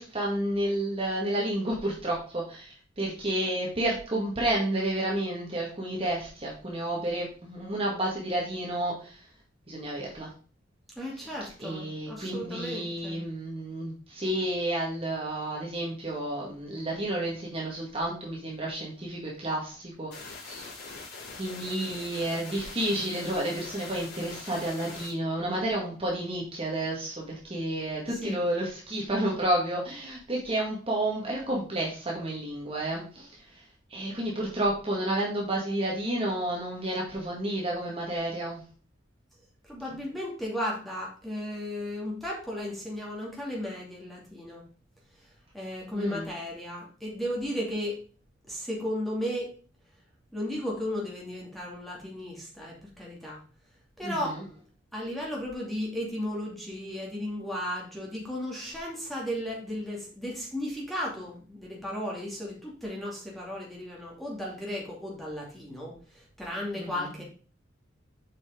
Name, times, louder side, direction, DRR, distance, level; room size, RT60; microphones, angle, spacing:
voice 1, 0.0-9.2 9.7-10.3 11.6-21.1 21.4-33.6 33.9-38.6 45.9-46.3 54.0-54.4 66.8-67.1, right 1 dB, 30° right, -3 dB, 1.9 m, -31 dB
voice 2, 11.0-13.2 28.1-28.4 39.6-44.6 45.2-45.3 45.5-48.0 48.5-49.5 50.3-53.4 54.0-54.6 54.9-67.2, left 1 dB, ahead, -4 dB, 2.5 m, -35 dB
sound 1, 20.1-25.1, left 3 dB, 55° left, 4.4 m, -43 dB
7.7 x 5.7 x 3.8 m, 0.40 s
head